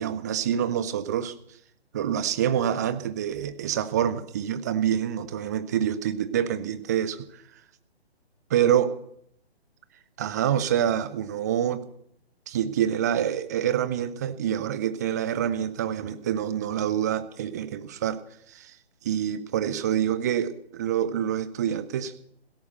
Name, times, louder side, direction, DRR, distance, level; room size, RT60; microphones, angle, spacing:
voice 1, 0.0-1.3 1.9-7.4 8.5-8.9 10.2-11.8 12.5-18.2 18.5-18.8 19.0-22.1, right 10 dB, 15° right, 13 dB, 0.6 m, -26 dB
16.5 x 13.0 x 6.7 m, 0.70 s
figure-of-eight pair, 135°, 33 cm